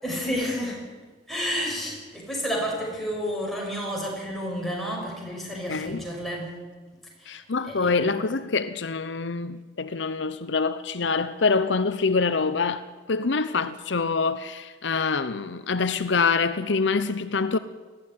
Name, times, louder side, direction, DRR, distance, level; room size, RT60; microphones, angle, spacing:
voice 1, 0.0-0.9 1.3-6.6 7.2-8.1, equal, ahead, 5.9 m, -31 dB
voice 2, 5.7-6.0 7.3-12.8 13.1-17.6, left 4 dB, 65° left, 0.7 m, -25 dB
19.5 x 14.5 x 9.6 m
head